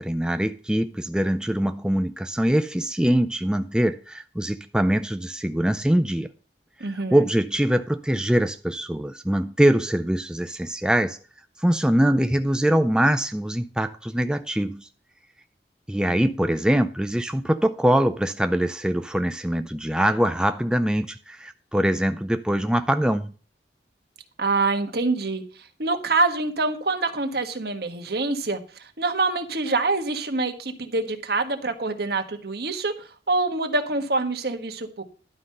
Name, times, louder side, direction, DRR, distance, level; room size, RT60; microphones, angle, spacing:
voice 1, 0.0-6.3 6.8-11.2 11.6-14.9 15.9-23.3, right 1 dB, 5° right, 0.4 m, -23 dB
voice 2, 6.8-7.2 24.4-25.4 25.8-32.9 33.3-35.0, right 3 dB, 60° right, 1.5 m, -25 dB
11.5 x 5.7 x 6.6 m
head